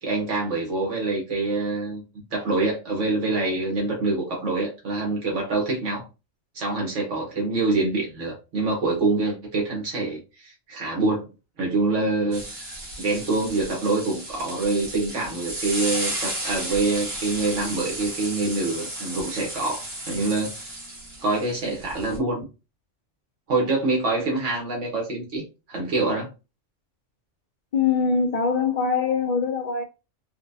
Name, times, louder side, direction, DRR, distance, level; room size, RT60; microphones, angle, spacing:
voice 1, 0.0-2.0 2.3-6.0 6.5-11.3 11.6-12.4 12.7-20.7 21.2-22.5 23.5-26.3, right 3 dB, 70° right, 1.4 m, -25 dB
sound 1, 12.3-22.2, right 1 dB, 50° right, 1.7 m, -34 dB
voice 2, 27.7-29.8, left 5 dB, 75° left, 0.3 m, -23 dB
4.3 x 2.2 x 2.6 m
omnidirectional pair, 1.3 m